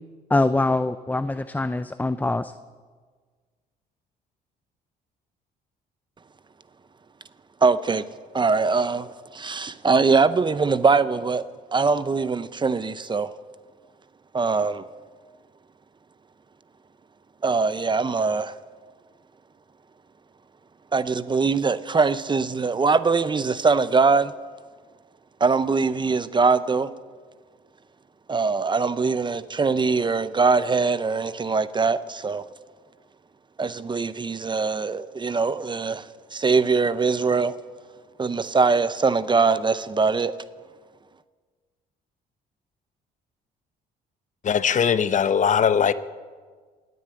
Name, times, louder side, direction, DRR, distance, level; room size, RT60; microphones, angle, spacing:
voice 1, 0.3-2.5, left 2 dB, 10° left, 0.5 m, -23 dB
voice 2, 7.6-8.0 8.3-9.1 9.3-11.4 11.7-13.3 14.3-14.8 17.4-18.6 20.9-24.3 25.4-26.9 28.3-32.5 33.6-36.1 36.3-37.5 38.2-40.3, right 4 dB, 25° right, 0.7 m, -22 dB
voice 3, 44.4-45.9, left 7 dB, 45° left, 0.7 m, -20 dB
18.5 x 9.4 x 7.7 m
supercardioid pair, 75°, 18 cm